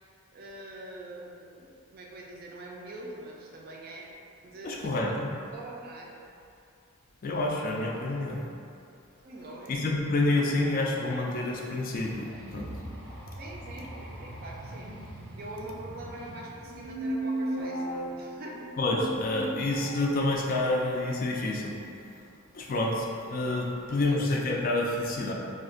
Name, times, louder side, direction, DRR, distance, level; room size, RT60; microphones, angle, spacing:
voice 1, 0.3-4.1 4.4-5.1 5.5-6.1 9.2-9.9 13.4-14.9 15.4-18.6 22.2-22.3 23.4-24.3, right 2 dB, 45° right, -2 dB, 0.4 m, -44 dB
voice 2, 4.6-5.3 7.2-8.4 9.7-12.7 18.8-21.8 22.5-25.3, left 2 dB, 40° left, -1 dB, 0.3 m, -28 dB
sound 1, 11.9-16.9, right 1 dB, 85° right, 0.7 m, -43 dB
sound 2, 16.6-20.1, right 1 dB, 85° left, 0.6 m, -34 dB
2.5 x 2.4 x 3.7 m, 2.5 s
head